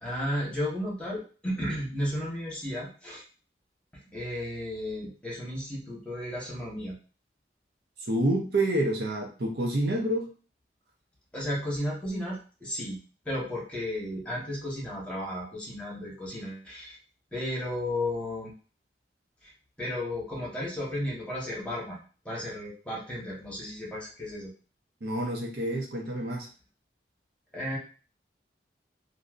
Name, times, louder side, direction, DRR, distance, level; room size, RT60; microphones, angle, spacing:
voice 1, 0.0-3.2 3.9-7.0 11.3-13.0 13.2-17.0 17.3-18.5 19.4-19.5 19.8-24.5 27.5-27.8, left 1 dB, 5° left, -6 dB, 1.2 m, -34 dB
voice 2, 8.1-10.3 25.0-26.5, right 1 dB, 60° right, 0 dB, 0.7 m, -28 dB
3.2 x 2.6 x 2.5 m, 0.37 s
head